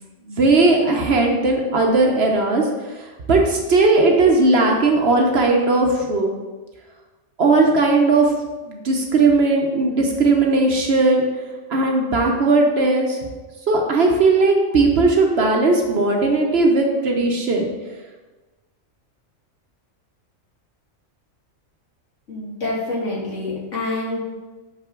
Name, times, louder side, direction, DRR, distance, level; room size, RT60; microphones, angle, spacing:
voice 1, 0.2-6.3 7.4-8.3 8.7-11.3 11.7-13.3 13.7-17.6, right 3 dB, 55° right, 1 dB, 1.0 m, -17 dB
voice 2, 22.3-24.2, left 2 dB, 65° left, -5 dB, 2.2 m, -26 dB
5.9 x 5.7 x 3.7 m, 1.2 s
omnidirectional pair, 1.4 m